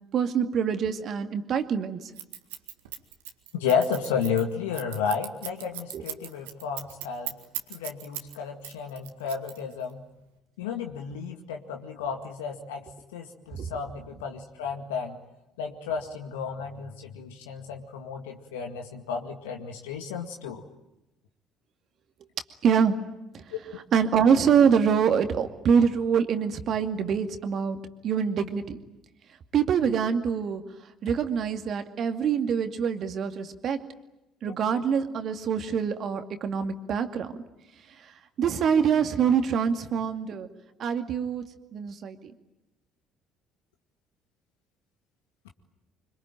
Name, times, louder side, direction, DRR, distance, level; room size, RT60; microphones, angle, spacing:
voice 1, 0.1-2.1 5.9-6.0 13.5-13.7 22.6-23.0 23.3-23.5 23.9-28.8 29.5-30.6 31.0-33.8 34.4-37.4 38.0-40.5 40.8-41.4 41.7-42.3, right 7 dB, 50° right, 7 dB, 2.3 m, -25 dB
Scissors, 2.2-8.3 8.6-9.9, right 12 dB, 75° right, 2.0 m, -37 dB
voice 2, 3.5-7.3 7.7-10.0 10.6-12.8 13.1-15.2 15.6-20.6 23.5-23.8, left 6 dB, 75° left, 3 dB, 2.0 m, -32 dB
26.0 x 25.0 x 9.1 m, 0.93 s
figure-of-eight pair, 55°, 0 cm